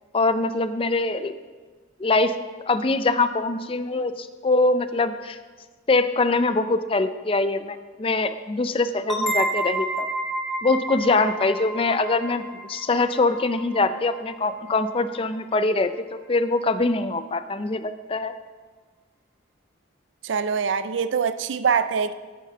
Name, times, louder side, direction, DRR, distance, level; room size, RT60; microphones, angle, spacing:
voice 1, 0.1-1.3 2.0-2.3 2.7-5.4 5.9-10.1 10.6-15.9 16.3-18.3, left 3 dB, 30° left, 0.4 m, -23 dB
sound 1, 9.1-14.5, right 1 dB, ahead, 1.0 m, -30 dB
voice 2, 20.2-22.1, right 6 dB, 70° right, 0.4 m, -24 dB
11.0 x 10.0 x 3.8 m
head